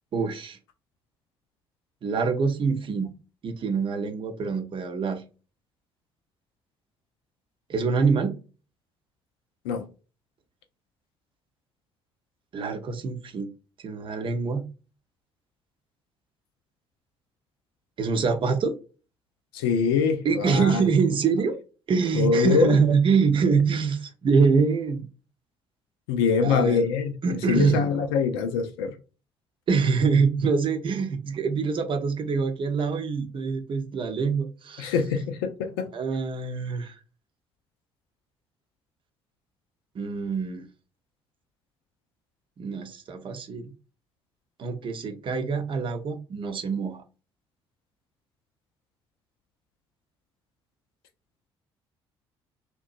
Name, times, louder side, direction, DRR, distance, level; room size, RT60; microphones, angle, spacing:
voice 1, 0.1-0.6 2.0-3.1 3.4-5.2 7.7-8.3 12.5-13.5 13.8-14.6 18.0-18.7 20.2-21.6 21.9-25.1 26.4-26.8 27.2-27.8 29.7-34.9 35.9-37.0 39.9-40.7 42.6-43.7 44.6-47.0, right 5 dB, 40° right, 0.6 m, -25 dB
voice 2, 19.5-20.8 22.1-22.8 26.1-27.1 27.5-29.0 34.8-35.9, left 5 dB, 70° left, 0.4 m, -24 dB
2.8 x 2.2 x 2.3 m
figure-of-eight pair, 45°, 13 cm